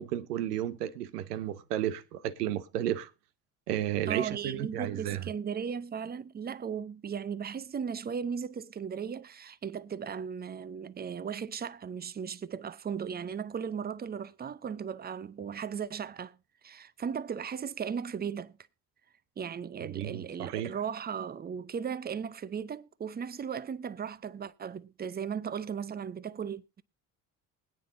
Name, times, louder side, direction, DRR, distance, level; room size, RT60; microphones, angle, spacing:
voice 1, 0.0-3.1 3.7-5.3 19.9-20.7, right 11 dB, 85° right, 0.9 m, -33 dB
voice 2, 4.1-16.4 16.6-18.6 19.4-26.8, right 7 dB, 20° right, 0.6 m, -36 dB
20.5 x 9.3 x 2.6 m
hypercardioid pair, 60°, 46 cm